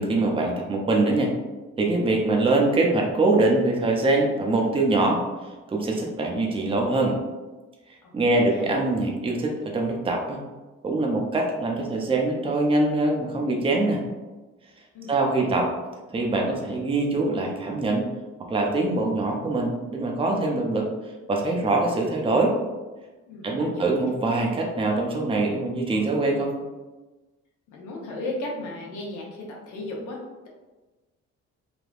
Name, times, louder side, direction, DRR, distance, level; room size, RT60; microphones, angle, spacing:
voice 1, 0.0-1.3 1.8-5.2 5.7-7.2 8.1-10.4 10.8-14.0 15.1-15.7 16.1-18.1 18.5-20.9 21.3-22.5 23.4-26.5, right 2 dB, 20° right, 0 dB, 0.5 m, -23 dB
voice 2, 8.0-8.7 14.9-15.5 23.3-23.8 27.7-30.2, left 2 dB, 85° left, -2 dB, 0.8 m, -35 dB
3.4 x 2.2 x 2.4 m, 1.2 s
cardioid pair, 90°, 30 cm